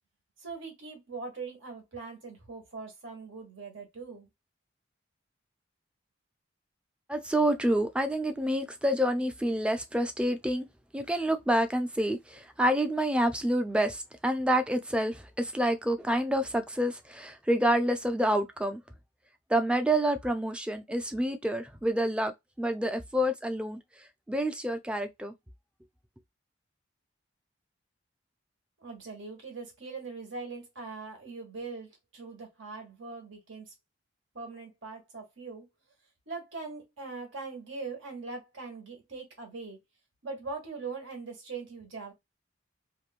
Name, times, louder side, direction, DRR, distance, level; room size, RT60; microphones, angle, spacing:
voice 1, 0.4-4.3 28.8-33.7 34.3-35.7 36.3-39.8 40.2-42.1, right 4 dB, 80° right, 1.4 m, -41 dB
voice 2, 7.1-10.7 10.9-18.8 19.5-22.3 22.6-23.8 24.3-25.3, right 1 dB, 5° right, 0.4 m, -28 dB
3.0 x 2.6 x 2.4 m
head